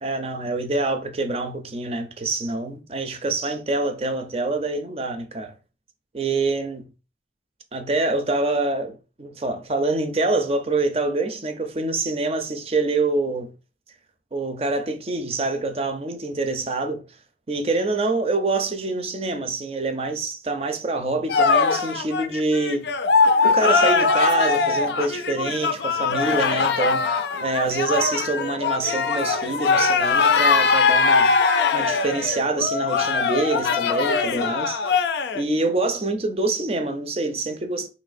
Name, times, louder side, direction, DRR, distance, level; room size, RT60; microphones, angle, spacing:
voice 1, 0.0-5.5 6.1-6.9 7.7-13.5 14.3-17.0 17.5-22.9 23.4-31.3 31.7-34.8 35.3-37.9, right 2 dB, 35° right, 0.5 m, -26 dB
sound 1, 21.3-35.4, left 4 dB, 75° left, 0.4 m, -21 dB
4.1 x 3.1 x 2.5 m
head